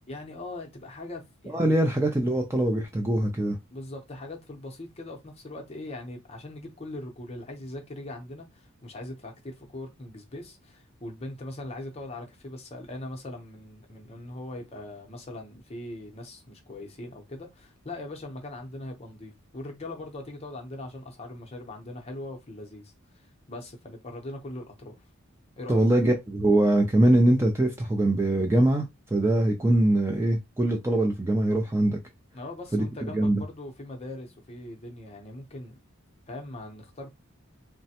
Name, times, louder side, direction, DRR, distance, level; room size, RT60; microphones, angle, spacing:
voice 1, 0.1-1.7 3.7-25.0 25.5-25.9 32.3-35.8 36.3-37.1, left 1 dB, 30° left, 0.7 m, -40 dB
voice 2, 1.5-3.6 25.7-28.8 29.1-32.0 32.7-33.4, right 1 dB, 10° right, 0.3 m, -23 dB
3.2 x 2.1 x 2.8 m
head